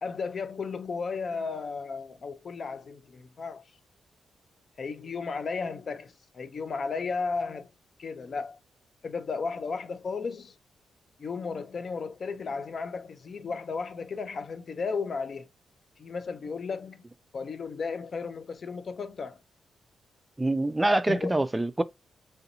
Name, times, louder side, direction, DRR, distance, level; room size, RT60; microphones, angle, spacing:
voice 1, 0.0-3.6 4.8-7.7 8.0-8.6 9.0-10.5 11.2-15.5 16.0-17.0 17.3-19.4 21.1-21.3, left 4 dB, 50° left, 0.4 m, -34 dB
voice 2, 20.4-21.8, right 2 dB, 15° right, 0.3 m, -25 dB
3.3 x 2.7 x 2.6 m
cardioid pair, 75°, 0 cm